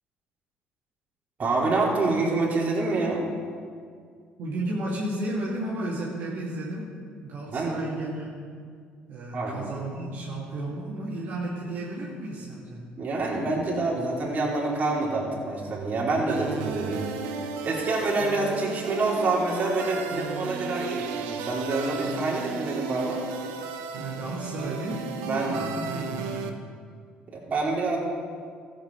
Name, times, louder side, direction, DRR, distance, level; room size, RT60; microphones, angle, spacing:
voice 1, 1.4-3.2 7.5-7.8 9.3-9.7 12.9-17.0 17.6-23.2 25.3-25.7 27.3-28.0, right 2 dB, 45° right, -4 dB, 3.2 m, -27 dB
voice 2, 4.4-8.4 9.1-12.9 23.9-26.6, right 1 dB, 65° right, -7 dB, 2.3 m, -33 dB
sound 1, 16.3-26.5, right 6 dB, 85° right, 0.8 m, -34 dB
15.0 x 7.8 x 4.6 m, 2.1 s
supercardioid pair, 75°, 4 cm